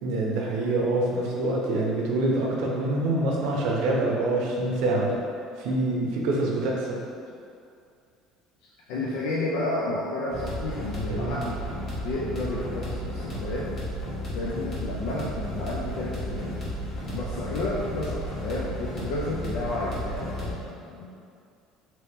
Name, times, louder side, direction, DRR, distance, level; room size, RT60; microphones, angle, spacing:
voice 1, 0.0-5.2 5.6-7.0 11.1-11.3, right 2 dB, 75° right, -2 dB, 0.6 m, -25 dB
voice 2, 8.6-11.6 11.9-13.7 14.3-16.6 17.1-21.1, left 2 dB, 80° left, -5 dB, 0.4 m, -31 dB
sound 1, 10.3-20.5, equal, 45° left, 1.1 m, -33 dB
2.9 x 2.8 x 3.5 m, 2.4 s
cardioid pair, 115°, 0 cm